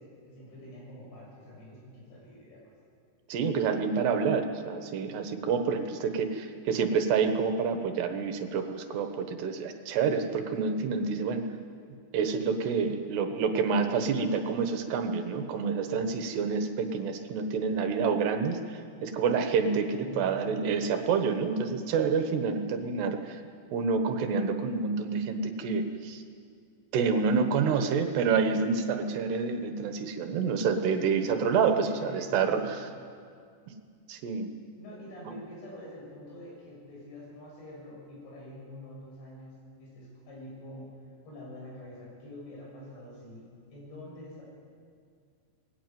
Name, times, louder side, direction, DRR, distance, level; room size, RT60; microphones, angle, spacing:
voice 1, 0.0-2.6 20.0-20.8 31.7-33.0 34.8-40.9 41.3-44.4, left 1 dB, 80° left, -4 dB, 9.1 m, -46 dB
voice 2, 3.3-11.5 12.1-23.4 23.7-26.2 26.9-32.9 34.1-34.5, right 5 dB, 75° right, 6 dB, 3.2 m, -28 dB
20.5 x 17.0 x 9.2 m, 2.2 s
omnidirectional pair, 5.0 m